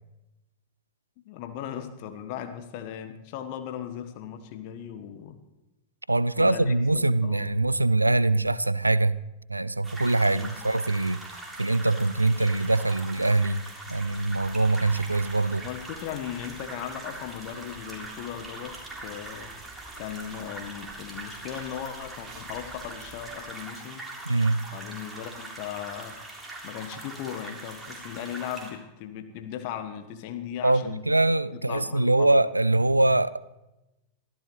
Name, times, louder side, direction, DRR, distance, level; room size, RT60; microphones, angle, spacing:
voice 1, 1.2-5.4 6.4-7.5 10.2-10.5 15.6-19.5 20.0-24.0 24.7-26.2 26.6-31.1 31.5-32.4, left 10 dB, 45° left, 1.4 m, -37 dB
voice 2, 6.1-9.2 9.5-11.2 11.6-15.6 24.3-24.7 30.6-33.6, right 2 dB, 85° right, 0.4 m, -23 dB
sound 1, 9.8-28.7, right 2 dB, 10° right, 3.8 m, -42 dB
sound 2, 13.9-23.4, right 5 dB, 35° right, 3.4 m, -52 dB
23.5 x 14.5 x 3.3 m
figure-of-eight pair, 90°, 0 cm